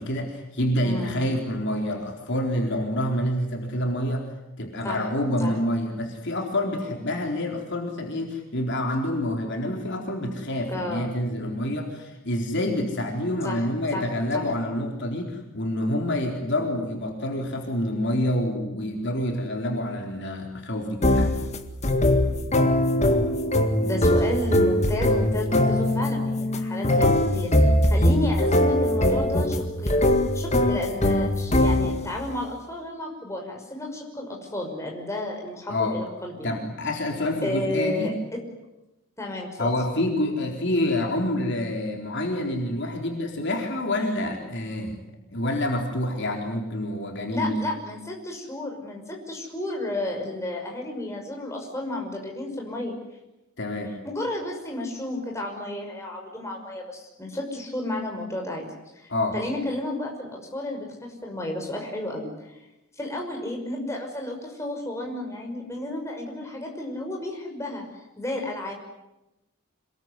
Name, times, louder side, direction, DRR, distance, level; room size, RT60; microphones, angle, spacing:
voice 1, 0.0-4.3 4.6-21.3 35.7-36.0 36.4-38.1 39.6-45.0 45.3-47.6 53.6-53.9 59.1-59.4, left 1 dB, 55° left, 1 dB, 4.1 m, -27 dB
voice 2, 0.8-1.3 4.8-5.1 5.4-5.5 10.7-11.1 13.4-14.5 23.8-30.0 30.3-36.6 37.4-38.4 39.2-39.7 47.3-52.9 54.0-58.6 59.0-62.6 63.0-67.9 68.2-68.7, left 1 dB, 15° left, 1 dB, 6.1 m, -32 dB
sound 1, 21.0-32.2, left 1 dB, 30° left, 2.0 m, -21 dB
27.5 x 22.0 x 9.8 m, 0.96 s
head